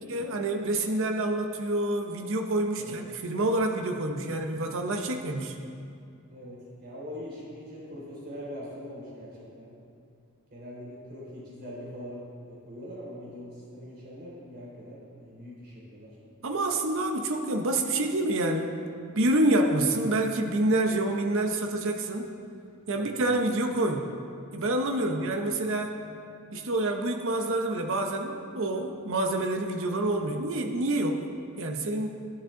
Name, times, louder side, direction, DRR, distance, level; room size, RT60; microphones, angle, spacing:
voice 1, 0.1-5.6 16.4-18.8 19.2-22.3 22.9-24.1 24.5-26.0 26.5-31.2 31.6-32.2, right 2 dB, 60° right, 4 dB, 0.8 m, -27 dB
voice 2, 6.3-9.7 10.5-16.2 22.9-23.2 25.0-25.3, equal, 45° right, -6 dB, 3.4 m, -42 dB
14.0 x 10.5 x 3.8 m, 2.4 s
head